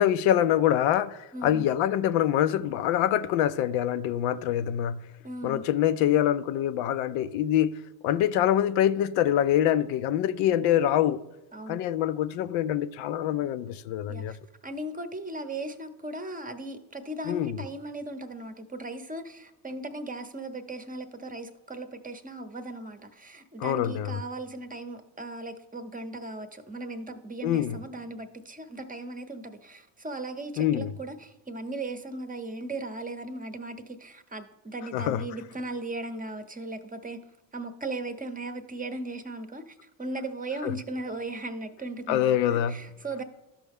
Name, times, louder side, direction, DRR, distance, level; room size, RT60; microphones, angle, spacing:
voice 1, 0.0-5.1 5.4-11.2 11.7-14.4 17.3-17.5 23.6-24.2 27.4-27.8 30.6-30.9 34.9-35.3 40.6-40.7 42.1-42.8, left 11 dB, 75° left, 0.5 m, -25 dB
voice 2, 1.3-1.6 5.2-5.6 11.5-11.8 14.1-14.4 14.6-37.2 37.5-43.2, right 2 dB, 15° right, 0.8 m, -37 dB
13.0 x 5.4 x 3.6 m
supercardioid pair, 75°, 48 cm